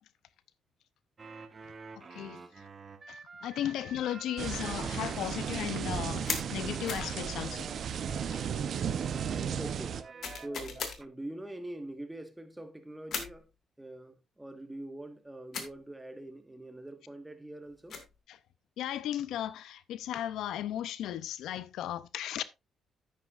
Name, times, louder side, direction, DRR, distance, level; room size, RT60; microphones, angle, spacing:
sound 1, 1.2-8.5 9.0-11.1, right 4 dB, 35° right, 1.3 m, -48 dB
voice 1, 1.9-2.4 3.1-7.7 8.3-8.4 18.3-18.4 18.8-22.4, left 11 dB, 80° left, 0.6 m, -36 dB
sound 2, 4.4-10.0, right 7 dB, 60° right, 0.8 m, -34 dB
sound 3, 6.3-6.5 6.9-7.1 10.2-11.0 13.1-13.4 15.5-15.8 17.7-18.1, left 6 dB, 60° left, 2.1 m, -37 dB
voice 2, 9.6-10.0 10.4-13.5 13.8-18.0, right 1 dB, 10° right, 1.5 m, -44 dB
10.0 x 9.1 x 2.5 m
cardioid pair, 90°, 0 cm